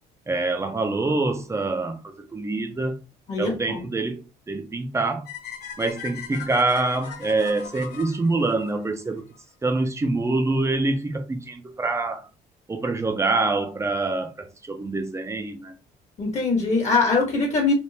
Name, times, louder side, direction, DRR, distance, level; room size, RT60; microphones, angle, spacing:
voice 1, 0.3-3.0 3.4-5.3 5.8-9.3 9.6-12.3 12.7-15.8, right 3 dB, 15° right, 0.6 m, -25 dB
voice 2, 3.3-3.8 16.2-17.7, left 4 dB, 40° left, 1.3 m, -22 dB
sound 1, 5.3-9.4, left 8 dB, 80° left, 1.0 m, -39 dB
3.5 x 2.4 x 2.8 m
cardioid pair, 110°, 17 cm